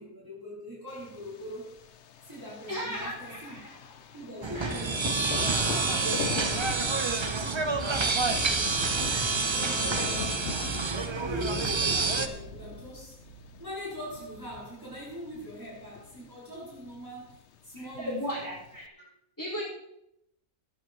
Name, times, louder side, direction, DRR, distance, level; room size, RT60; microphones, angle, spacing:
voice 1, 0.0-1.8 2.2-3.7 4.1-5.2 5.8-6.8 7.0-9.1 9.4-10.7 11.1-13.2 13.6-18.4, equal, 15° right, -7 dB, 5.1 m, -42 dB
Thunder, 0.9-18.9, left 7 dB, 55° left, 0.9 m, -42 dB
voice 2, 2.7-3.6 4.5-4.8 17.8-19.0 19.4-19.6, equal, 10° left, -4 dB, 5.6 m, -35 dB
sound 1, 4.4-12.3, right 4 dB, 35° right, 0.4 m, -28 dB
sound 2, 5.3-13.8, right 6 dB, 80° right, 1.3 m, -47 dB
19.0 x 11.0 x 3.1 m, 0.80 s
omnidirectional pair, 1.6 m